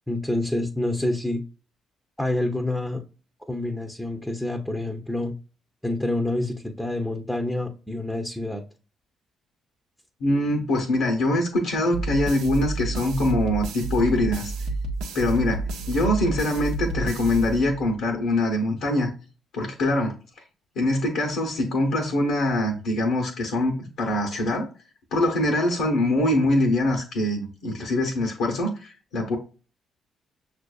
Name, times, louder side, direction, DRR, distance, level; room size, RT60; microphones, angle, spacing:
voice 1, 0.1-1.4 2.2-3.0 3.5-5.3 5.8-8.6, left 1 dB, 5° left, 0.6 m, -27 dB
voice 2, 10.2-14.5 15.1-19.1 19.5-20.2 20.8-24.7 25.1-29.4, left 1 dB, 80° left, 0.8 m, -23 dB
sound 1, 11.9-18.0, right 2 dB, 80° right, 0.5 m, -30 dB
6.0 x 2.5 x 2.3 m
hypercardioid pair, 55°, 0 cm